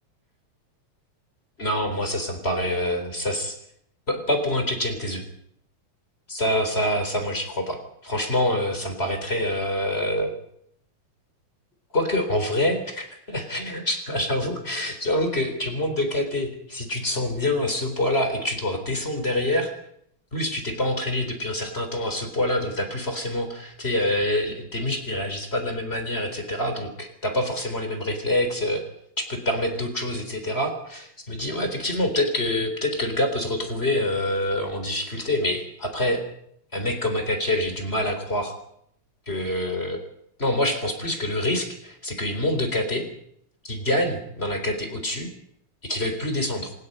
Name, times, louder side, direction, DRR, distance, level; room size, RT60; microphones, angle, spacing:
voice 1, 1.6-3.5 4.1-5.2 6.3-10.3 11.9-19.7 20.3-28.8 29.2-36.2 36.7-38.5 39.3-40.0 40.4-43.0 43.6-45.3 45.8-46.7, left 1 dB, 20° left, 6 dB, 4.1 m, -26 dB
26.0 x 20.0 x 5.5 m, 0.72 s
omnidirectional pair, 3.4 m